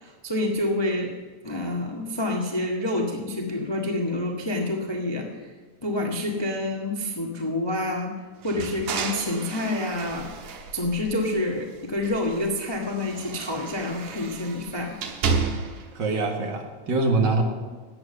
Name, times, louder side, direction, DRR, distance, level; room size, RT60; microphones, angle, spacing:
voice 1, 0.0-1.1 1.4-5.5 5.8-8.1 8.4-10.3 10.7-14.9, left 1 dB, 30° left, -1 dB, 0.4 m, -28 dB
sound 1, 8.4-11.6 12.0-15.9, right 5 dB, 75° right, 2.5 m, -32 dB
voice 2, 15.9-17.4, right 3 dB, 45° right, 2 dB, 2.0 m, -24 dB
13.0 x 9.3 x 6.7 m, 1.4 s
omnidirectional pair, 3.4 m